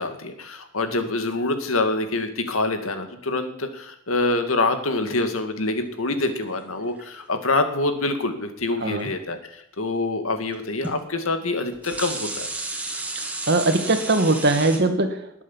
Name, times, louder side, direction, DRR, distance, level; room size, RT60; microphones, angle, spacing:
voice 1, 0.0-12.5, left 2 dB, 80° left, 7 dB, 2.1 m, -26 dB
sound 1, 6.1-7.2 9.0-9.1 10.5-10.6 10.8-11.0 11.6-14.8, right 2 dB, 5° right, 2.4 m, -33 dB
voice 2, 13.5-15.4, right 2 dB, 55° right, 6 dB, 2.1 m, -21 dB
19.5 x 8.5 x 7.3 m, 0.75 s
head